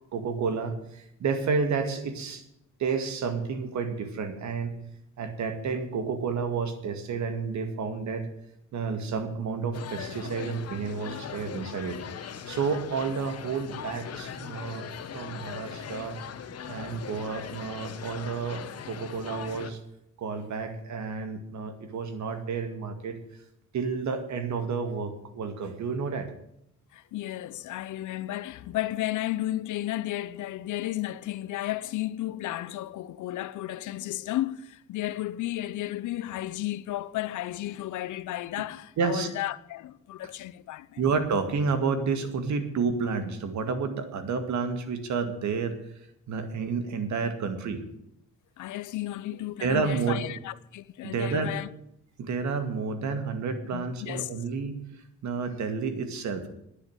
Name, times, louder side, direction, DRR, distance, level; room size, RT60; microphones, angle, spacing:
voice 1, 0.1-2.4 2.8-4.8 5.2-8.3 8.7-12.0 12.5-14.9 15.1-16.2 16.7-19.8 20.2-23.2 23.7-26.3 39.0-39.3 41.0-45.8 46.3-47.8 49.6-50.2 51.0-51.5 52.2-54.8 55.2-56.5, right 5 dB, 70° right, 2.2 m, -30 dB
sound 1, 9.7-19.7, left 7 dB, 55° left, 1.4 m, -40 dB
voice 2, 26.9-41.0 48.6-51.7 53.7-54.3, left 14 dB, 80° left, 0.8 m, -33 dB
10.5 x 9.5 x 9.0 m
cardioid pair, 90°, 30 cm